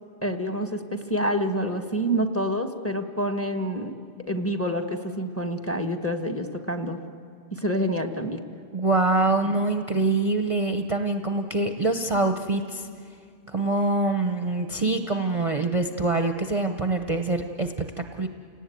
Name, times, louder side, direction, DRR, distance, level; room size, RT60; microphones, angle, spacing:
voice 1, 0.2-3.9 4.3-7.0 7.5-8.4, equal, 10° left, 6 dB, 1.3 m, -27 dB
voice 2, 8.7-12.9 13.5-18.3, right 2 dB, 30° right, 6 dB, 0.9 m, -25 dB
29.5 x 18.0 x 9.3 m, 2.3 s
omnidirectional pair, 1.3 m